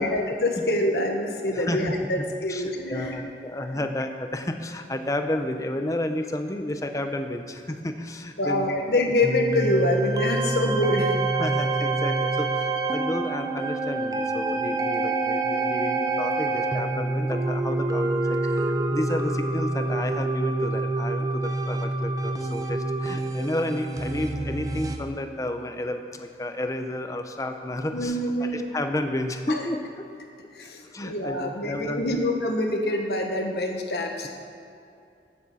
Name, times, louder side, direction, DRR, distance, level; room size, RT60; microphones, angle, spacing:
voice 1, 0.0-3.2 8.4-11.2 27.9-28.7 29.5-29.6 30.5-34.3, left 1 dB, 70° left, 2 dB, 1.4 m, -26 dB
voice 2, 1.5-2.6 2.9-8.7 11.4-30.0 30.9-32.2, left 1 dB, 20° left, 6 dB, 0.7 m, -31 dB
sound 1, 9.2-25.0, right 2 dB, 20° right, 0.7 m, -27 dB
8.8 x 8.8 x 7.1 m, 2.6 s
head